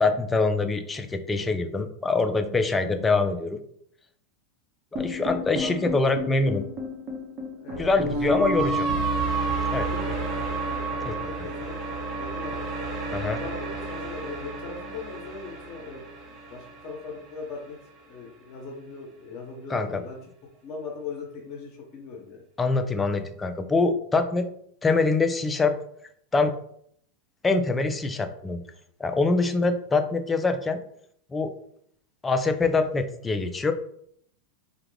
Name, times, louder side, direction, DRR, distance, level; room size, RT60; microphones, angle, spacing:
voice 1, 0.0-3.6 4.9-6.7 7.8-8.7 9.7-9.9 11.1-11.2 13.1-13.4 19.7-20.0 22.6-24.5 24.8-25.8 26.3-26.5 27.4-28.6 29.0-30.8 31.3-31.5 32.2-33.7, left 3 dB, 15° left, 8 dB, 0.3 m, -24 dB
sound 1, 5.0-17.2, right 2 dB, 35° right, 0.9 m, -31 dB
voice 2, 5.6-6.0 7.6-8.6 9.8-12.6 13.3-17.8 18.1-20.2 20.6-22.4, left 4 dB, 40° left, 0 dB, 0.9 m, -39 dB
2.4 x 2.2 x 3.1 m, 0.67 s
hypercardioid pair, 105°, 0 cm